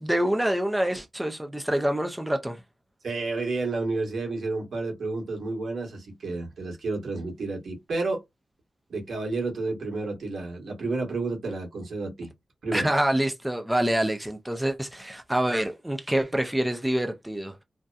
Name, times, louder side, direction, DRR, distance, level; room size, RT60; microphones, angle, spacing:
voice 1, 0.0-2.6 12.7-17.6, right 1 dB, 10° right, 0.5 m, -26 dB
voice 2, 3.0-8.2 8.9-12.3 12.6-12.9, right 3 dB, 80° right, 1.2 m, -30 dB
2.7 x 2.1 x 2.3 m
cardioid pair, 65°, 0 cm